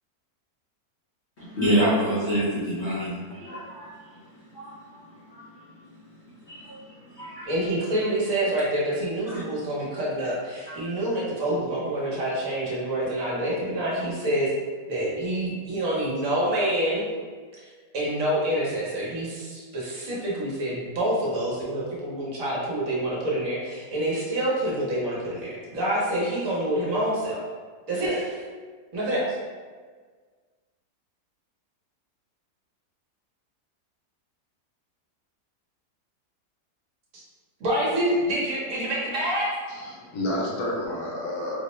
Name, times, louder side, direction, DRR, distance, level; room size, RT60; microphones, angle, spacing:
voice 1, 1.4-4.0 4.5-4.8 5.3-5.5 6.5-6.8 7.2-7.5 9.3-9.4 10.7-10.8, equal, 55° left, -7 dB, 0.8 m, -27 dB
voice 2, 7.5-14.5 14.9-17.1 17.6-17.7 17.9-27.4 27.9-28.4 28.9-29.2 37.1-37.2 37.6-39.5, right 1 dB, 60° right, -5 dB, 1.1 m, -27 dB
voice 3, 39.7-41.6, left 1 dB, 75° left, -3 dB, 1.2 m, -30 dB
4.2 x 2.0 x 3.0 m, 1.5 s
omnidirectional pair, 1.7 m